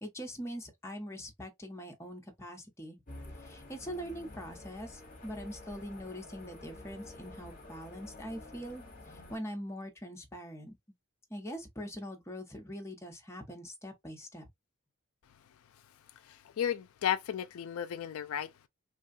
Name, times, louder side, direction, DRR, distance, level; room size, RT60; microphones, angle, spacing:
voice 1, 0.0-3.0 3.3-10.8 11.3-14.5, equal, 15° left, 0.9 m, -43 dB
sound 1, 3.1-9.4, left 2 dB, 40° left, 1.1 m, -49 dB
voice 2, 16.2-18.7, left 9 dB, 85° left, 0.4 m, -34 dB
3.3 x 2.3 x 2.5 m
head